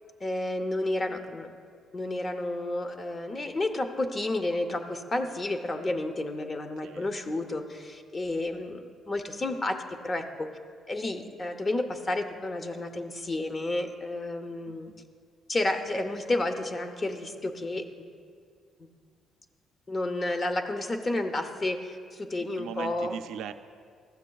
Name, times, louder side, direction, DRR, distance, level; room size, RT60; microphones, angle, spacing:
voice 1, 0.2-1.6 1.9-10.5 10.9-14.9 15.5-17.8 19.9-23.2, left 2 dB, 30° left, 6 dB, 0.6 m, -31 dB
voice 2, 14.7-15.1 22.6-23.5, right 8 dB, 85° right, 9 dB, 0.4 m, -39 dB
13.5 x 6.9 x 2.3 m, 2.1 s
cardioid pair, 90°, 0 cm